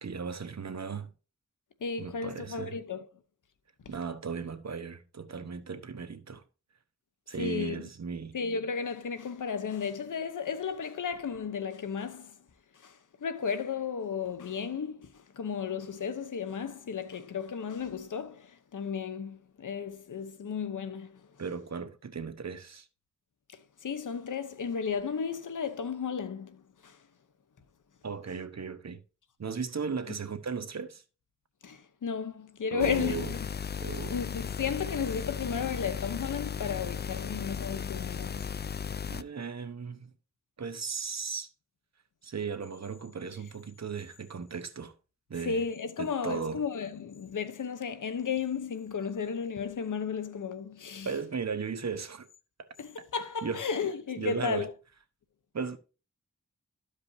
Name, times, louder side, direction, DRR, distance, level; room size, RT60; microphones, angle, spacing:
voice 1, 0.0-1.1 2.0-2.8 3.9-6.4 7.3-8.4 21.4-22.9 28.0-29.0 29.4-31.0 32.7-33.3 33.8-34.2 39.1-40.1 40.6-41.5 42.2-44.9 45.3-45.6 46.0-46.6 51.0-52.3 52.6-52.7 53.4-53.6 54.2-54.7 55.5-55.8, right 5 dB, 60° right, 1.1 m, -36 dB
voice 2, 1.8-3.1 7.4-7.8 8.3-12.4 12.7-21.3 23.8-27.0 30.1-30.2 31.6-33.4 34.1-38.5 45.4-51.1 52.8-54.7, left 6 dB, 90° left, 0.9 m, -34 dB
sound 1, 32.8-39.2, left 7 dB, 35° left, 0.4 m, -36 dB
13.0 x 5.1 x 2.7 m
cardioid pair, 45°, 30 cm